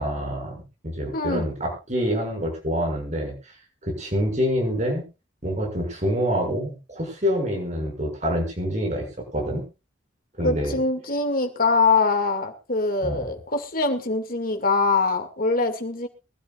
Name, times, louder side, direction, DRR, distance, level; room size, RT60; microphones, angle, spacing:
voice 1, 0.0-3.3 3.8-5.0 5.4-9.1 9.3-9.6 10.4-10.7 13.0-13.3, equal, 40° right, 2 dB, 6.5 m, -26 dB
voice 2, 1.1-1.5 10.4-16.1, left 3 dB, 45° left, 5 dB, 2.3 m, -23 dB
23.5 x 13.0 x 2.5 m, 0.29 s
head